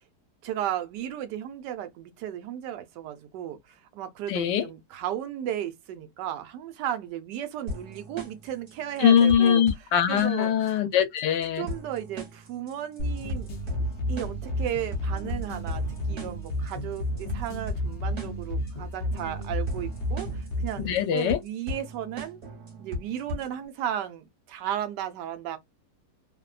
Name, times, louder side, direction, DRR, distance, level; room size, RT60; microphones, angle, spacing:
voice 1, 0.4-9.6 10.1-10.5 11.6-13.5 14.1-22.4 22.8-25.6, right 11 dB, 80° right, 1.2 m, -34 dB
voice 2, 4.3-4.7 9.0-11.7 20.8-21.4, left 9 dB, 80° left, 1.2 m, -22 dB
sound 1, 7.7-23.7, left 1 dB, 45° right, 1.3 m, -38 dB
sound 2, 13.0-21.0, equal, 55° left, 0.8 m, -32 dB
3.1 x 2.1 x 2.3 m
omnidirectional pair, 1.8 m